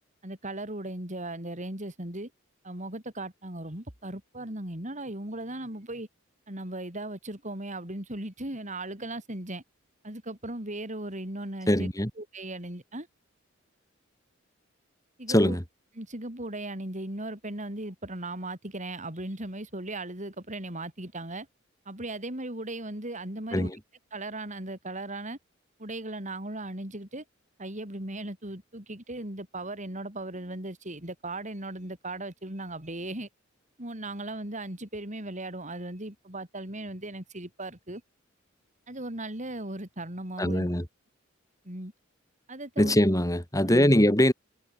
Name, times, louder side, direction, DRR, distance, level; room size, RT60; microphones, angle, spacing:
voice 1, 0.2-2.3 2.6-6.1 6.5-9.6 10.0-11.9 12.2-13.1 15.2-15.6 16.0-21.5 21.9-23.7 24.1-25.4 25.8-27.2 27.6-33.3 33.8-38.0 38.9-40.7 41.6-41.9 42.5-43.0 43.6-43.9, right 1 dB, 40° right, 6.4 m, -37 dB
voice 2, 11.7-12.1 15.3-15.6 23.5-23.8 40.4-40.9 42.8-44.3, left 1 dB, 15° left, 5.6 m, -22 dB
head